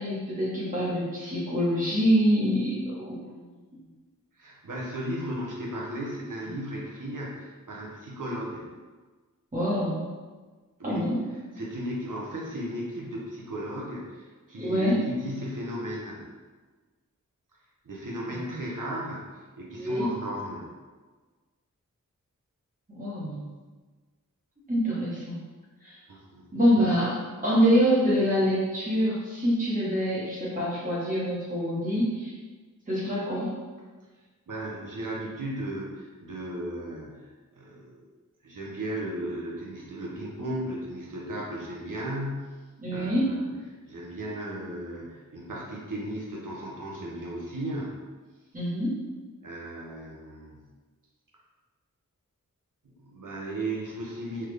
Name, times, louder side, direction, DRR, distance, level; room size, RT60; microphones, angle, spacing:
voice 1, 0.0-3.4 9.5-10.1 10.8-11.2 14.5-15.0 18.5-18.6 19.8-20.1 22.9-23.4 24.7-25.4 25.8-26.0 26.5-27.2 27.4-32.3 32.9-33.5 42.8-43.4 48.5-49.0, equal, 25° right, -8 dB, 1.1 m, -25 dB
voice 2, 4.4-8.7 10.8-11.1 11.6-16.3 17.8-19.3 19.6-20.7 26.1-26.5 34.5-38.1 38.4-42.6 42.9-43.5 43.9-48.0 49.4-50.7 52.8-54.5, right 1 dB, 70° right, -3 dB, 0.8 m, -35 dB
3.5 x 2.3 x 3.2 m, 1.3 s
wide cardioid pair, 45°, 33 cm